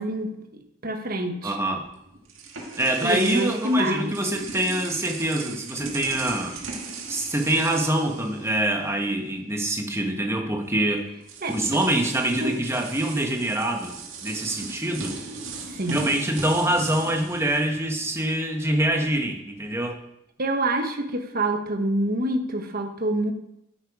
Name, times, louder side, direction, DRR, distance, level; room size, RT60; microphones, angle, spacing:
voice 1, 0.0-1.6 3.0-4.2 11.4-11.5 12.4-12.6 15.7-16.2 20.4-23.3, right 1 dB, 45° right, 5 dB, 1.3 m, -26 dB
voice 2, 1.4-1.8 2.8-6.6 7.1-11.1 11.5-13.9 14.2-15.2 15.9-20.0, right 1 dB, 15° right, 3 dB, 1.3 m, -25 dB
sound 1, 1.8-9.0 9.3-9.5 10.6-10.7 11.2-18.4, right 4 dB, 70° right, 2.0 m, -38 dB
12.0 x 8.8 x 4.9 m, 0.80 s
head